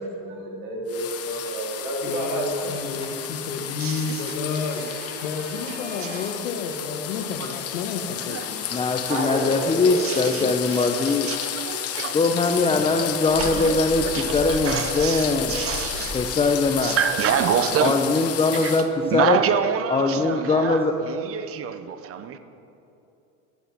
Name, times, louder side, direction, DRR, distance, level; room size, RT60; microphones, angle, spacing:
voice 1, 0.2-2.7 4.5-6.3 9.1-9.9, right 2 dB, 85° right, 3.3 m, -31 dB
sound 1, 0.9-18.9, left 10 dB, 35° left, 1.1 m, -32 dB
voice 2, 2.0-4.9 5.2-8.7 13.5-13.7, left 4 dB, 90° left, 1.4 m, -31 dB
voice 3, 3.8-4.4 4.8-4.9 5.7-6.2 8.3-8.8 10.0-12.2 13.4-13.8 14.1-16.2 16.8-18.0 18.6-18.7 19.0-22.4, right 9 dB, 35° right, 0.9 m, -27 dB
voice 4, 8.7-11.3 12.1-15.6 16.1-17.0 17.8-19.4 19.9-21.0, left 3 dB, 15° left, 0.6 m, -22 dB
sound 2, 12.6-17.8, equal, 5° right, 2.2 m, -39 dB
14.0 x 11.5 x 6.0 m
supercardioid pair, 120°, 39 cm